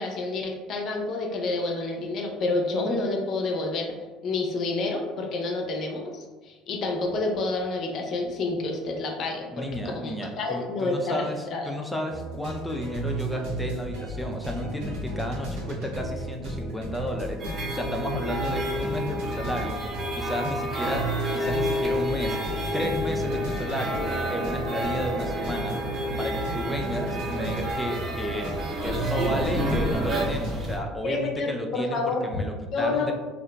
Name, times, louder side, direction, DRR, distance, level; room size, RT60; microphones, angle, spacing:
voice 1, 0.0-3.9 4.2-9.7 10.0-11.7 31.0-32.2 32.7-33.1, left 3 dB, 55° left, 2 dB, 0.6 m, -29 dB
voice 2, 9.5-17.4 17.7-19.8 20.1-22.4 22.7-25.8 26.2-28.5 28.8-33.1, equal, 5° left, 2 dB, 0.4 m, -32 dB
sound 1, 12.1-30.8, right 1 dB, 75° right, 0.9 m, -34 dB
sound 2, 17.4-30.8, equal, 40° right, 0.7 m, -30 dB
2.7 x 2.5 x 2.2 m, 1.3 s
hypercardioid pair, 75°, 0 cm